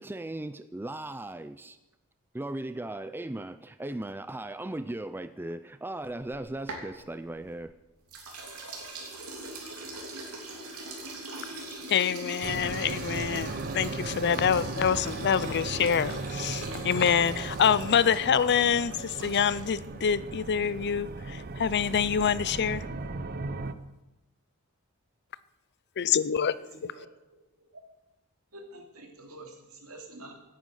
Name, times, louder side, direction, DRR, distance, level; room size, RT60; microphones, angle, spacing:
voice 1, 0.0-1.8 2.3-7.7, right 1 dB, 10° right, 12 dB, 0.4 m, -37 dB
sound 1, 6.1-7.7 8.1-19.9, right 2 dB, 90° right, 3.2 m, -41 dB
voice 2, 11.9-22.8 26.0-26.5, left 7 dB, 50° left, 17 dB, 0.5 m, -26 dB
sound 2, 12.4-23.7, right 3 dB, 45° right, 0.8 m, -37 dB
voice 3, 28.5-30.3, right 2 dB, 75° right, 2 dB, 2.9 m, -47 dB
17.5 x 9.3 x 6.4 m, 0.97 s
head